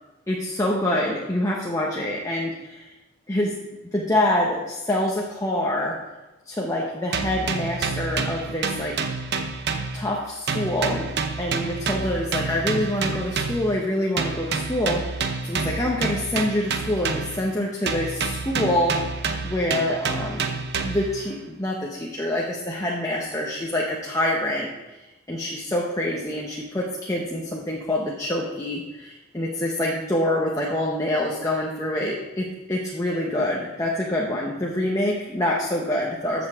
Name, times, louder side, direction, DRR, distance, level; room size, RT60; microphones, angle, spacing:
voice 1, 0.3-2.9 3.3-3.5 3.9-6.0 6.5-9.0 9.9-11.1 11.4-19.0 19.4-20.5 20.8-36.5, left 1 dB, 15° left, -2 dB, 0.9 m, -26 dB
sound 1, 7.1-10.2 10.5-13.8 14.2-17.5 17.9-21.2, right 4 dB, 55° right, 0.8 m, -28 dB
14.5 x 7.0 x 3.6 m, 1.1 s
head